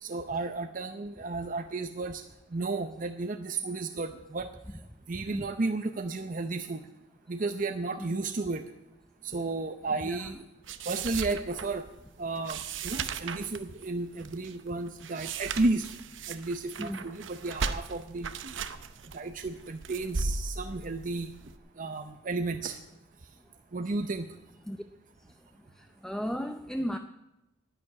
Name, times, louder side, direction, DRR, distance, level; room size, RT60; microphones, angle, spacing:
voice 1, 0.0-2.2 2.5-4.5 5.1-6.8 7.3-8.6 9.2-10.4 10.9-11.8 12.2-15.9 16.3-18.5 19.1-21.3 21.8-22.8 23.7-24.2, right 3 dB, 45° right, 8 dB, 0.7 m, -33 dB
sound 1, 10.6-21.5, right 4 dB, 80° right, 0.8 m, -37 dB
voice 2, 26.0-27.0, equal, 5° left, 7 dB, 0.5 m, -34 dB
11.0 x 9.7 x 9.6 m, 0.95 s
head